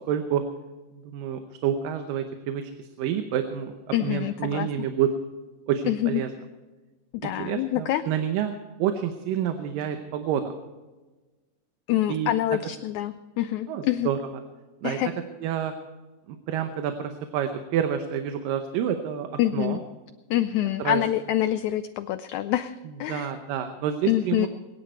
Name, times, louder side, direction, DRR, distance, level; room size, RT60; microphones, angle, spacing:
voice 1, 0.1-0.4 0.9-5.1 5.7-6.3 7.2-10.5 12.1-12.3 13.7-14.2 14.8-15.0 15.4-15.7 16.3-19.8 20.8-21.0 23.1-24.5, right 9 dB, 90° right, 7 dB, 2.6 m, -28 dB
voice 2, 3.9-4.9 5.9-6.2 7.2-8.0 11.9-14.1 14.8-15.1 19.4-19.8 20.3-23.3 24.1-24.5, left 13 dB, 80° left, 11 dB, 1.7 m, -26 dB
22.0 x 10.5 x 4.5 m, 1.2 s
omnidirectional pair, 3.8 m